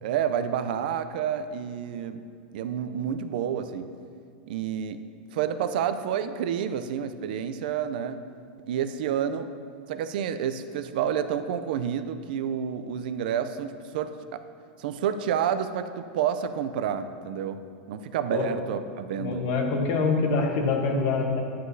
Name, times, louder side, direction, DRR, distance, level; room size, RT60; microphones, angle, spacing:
voice 1, 0.0-2.2 2.5-3.9 4.5-5.0 5.3-8.2 8.7-9.5 9.9-14.4 14.8-17.6 17.9-19.4, right 8 dB, 70° right, 10 dB, 0.4 m, -29 dB
voice 2, 19.2-21.4, left 4 dB, 55° left, 3 dB, 1.0 m, -25 dB
9.3 x 6.2 x 2.7 m, 2.2 s
supercardioid pair, 125°, 5 cm